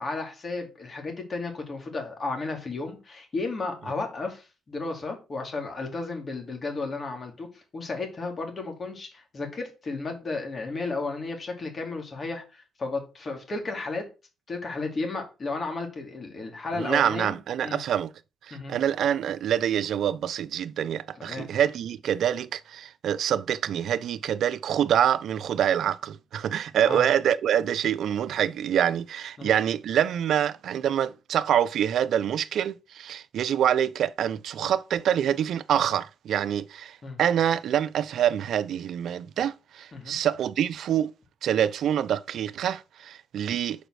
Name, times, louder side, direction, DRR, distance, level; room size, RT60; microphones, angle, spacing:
voice 1, 0.0-14.1 14.5-17.8 18.5-18.8 21.2-21.5 26.9-27.1 29.4-29.5 37.0-37.2 39.9-40.2, left 3 dB, 40° left, 2.6 m, -33 dB
voice 2, 16.8-18.1 18.5-41.1 41.4-43.9, right 9 dB, 70° right, 0.4 m, -26 dB
5.0 x 4.8 x 6.2 m
cardioid pair, 90°, 0 cm